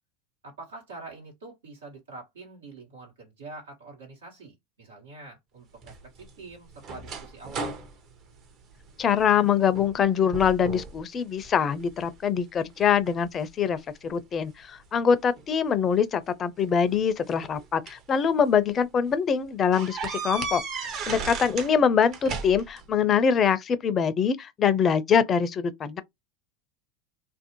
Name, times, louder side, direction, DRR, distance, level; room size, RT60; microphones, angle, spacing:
voice 1, 0.4-7.7 20.8-21.2, right 3 dB, 85° right, 1.2 m, -45 dB
sound 1, 5.8-9.3 9.7-10.0 10.3-11.0 11.4-12.2 12.8-14.2 15.4-15.5 16.7-18.1 18.6-18.8 19.1-19.2 19.7-21.7 22.0-22.8, right 4 dB, 50° right, 0.8 m, -36 dB
voice 2, 9.0-26.0, left 7 dB, 35° left, 0.4 m, -24 dB
2.6 x 2.0 x 2.8 m
hypercardioid pair, 90°, 0 cm